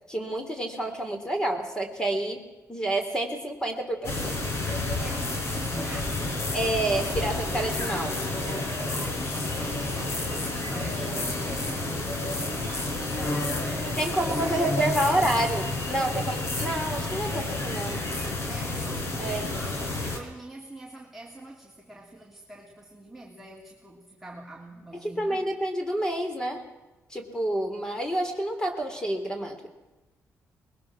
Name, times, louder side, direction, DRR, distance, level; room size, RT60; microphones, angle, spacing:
voice 1, 0.1-4.5 6.5-8.2 11.0-11.2 14.0-18.0 19.2-19.5 25.0-26.6 27.1-29.7, right 1 dB, 15° left, 3.6 m, -29 dB
sound 1, 4.0-20.2, left 2 dB, 55° left, 4.9 m, -30 dB
voice 2, 5.0-6.6 8.7-15.5 18.5-25.5, right 2 dB, 5° right, 2.6 m, -45 dB
24.0 x 21.5 x 6.2 m
cardioid pair, 120°, 5 cm